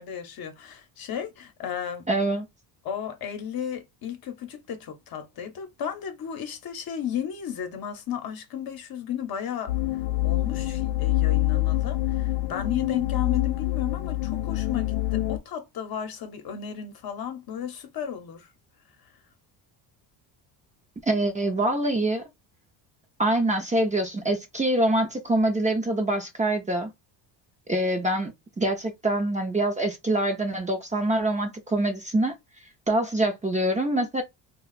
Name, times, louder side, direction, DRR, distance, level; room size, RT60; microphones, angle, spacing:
voice 1, 0.0-2.0 2.8-9.7 10.2-18.5, left 8 dB, 50° left, 0.9 m, -34 dB
voice 2, 2.1-2.5 21.1-22.2 23.2-26.9 27.7-32.4 32.9-34.2, right 1 dB, 15° right, 0.6 m, -25 dB
sound 1, 9.7-15.4, left 16 dB, 75° left, 0.6 m, -26 dB
2.4 x 2.3 x 3.8 m
cardioid pair, 95°, 45 cm